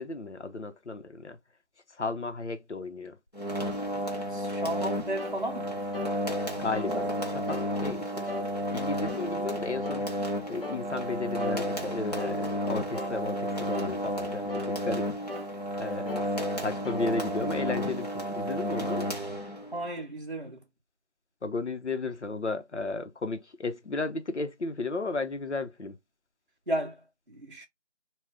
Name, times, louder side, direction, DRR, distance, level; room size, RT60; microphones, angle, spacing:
voice 1, 0.0-1.4 2.0-3.2 6.6-8.3 8.7-10.1 10.5-15.1 15.8-16.1 16.6-19.1 21.4-26.0, left 3 dB, 80° left, 0.9 m, -34 dB
sound 1, 3.3-19.8, equal, 35° left, 0.9 m, -32 dB
voice 2, 4.3-5.8 19.7-20.6 26.7-27.7, right 1 dB, 50° right, 0.5 m, -34 dB
sound 2, 5.2-5.4 5.9-6.2 6.7-7.0 7.5-7.7 8.3-8.5 9.1-9.3 9.8-10.1 10.6-10.8 11.4-11.6 12.2-12.4 12.9-13.2 13.7-14.0 14.5-14.7 15.3-15.5 16.1-16.3 16.8-17.1, left 3 dB, 55° left, 0.8 m, -38 dB
3.6 x 2.4 x 3.5 m
figure-of-eight pair, 180°, 34 cm